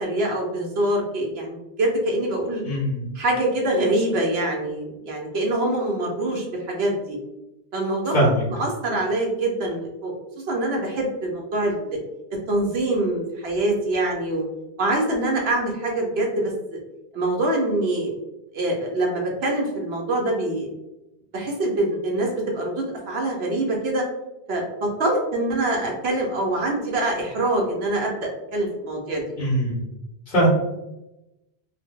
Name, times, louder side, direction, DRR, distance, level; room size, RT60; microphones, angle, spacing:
voice 1, 0.0-2.6 3.1-7.2 7.7-8.3 8.6-10.1 10.5-12.0 12.5-14.4 14.8-16.5 17.1-18.1 18.5-20.7 21.3-24.0 24.5-28.2 28.5-29.2, right 1 dB, 70° right, 0 dB, 0.9 m, -24 dB
voice 2, 2.6-3.1 8.1-8.4 29.4-29.8 30.3-30.5, right 1 dB, 50° left, -7 dB, 1.2 m, -21 dB
2.7 x 2.1 x 3.6 m, 0.94 s
omnidirectional pair, 1.1 m